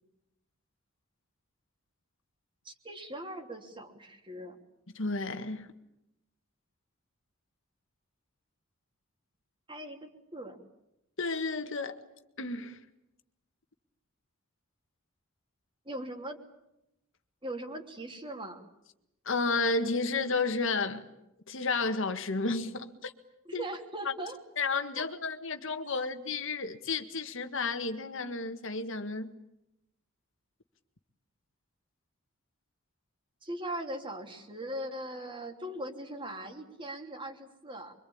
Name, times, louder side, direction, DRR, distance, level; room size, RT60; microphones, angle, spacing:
voice 1, 2.6-4.6 9.7-10.6 15.8-16.4 17.4-18.6 23.4-24.4 25.0-25.1 33.4-37.9, right 1 dB, 25° right, 3.0 m, -40 dB
voice 2, 4.9-5.7 11.2-12.0 12.4-12.8 19.2-21.0 21.5-23.1 23.5-23.6 24.6-29.3, left 3 dB, 65° left, 1.7 m, -32 dB
25.5 x 24.5 x 8.7 m
head